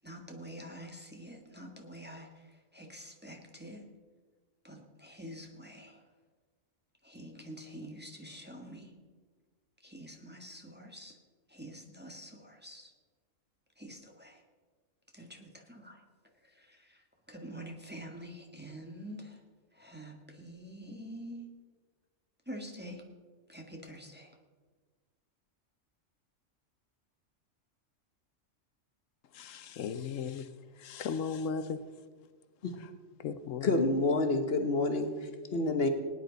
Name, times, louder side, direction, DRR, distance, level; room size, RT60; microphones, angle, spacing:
voice 1, 0.0-3.9 4.6-6.0 7.0-8.9 9.8-11.2 11.5-12.9 13.8-14.4 15.1-16.0 16.4-19.4 19.7-21.5 22.4-23.0 23.5-24.4, equal, 10° right, 1 dB, 1.5 m, -47 dB
voice 2, 29.3-31.8 32.8-32.9 33.2-33.9, left 6 dB, 80° left, 11 dB, 1.1 m, -37 dB
voice 3, 33.6-35.9, left 2 dB, 50° left, 6 dB, 1.3 m, -28 dB
18.5 x 10.0 x 4.0 m, 1.5 s
omnidirectional pair, 1.3 m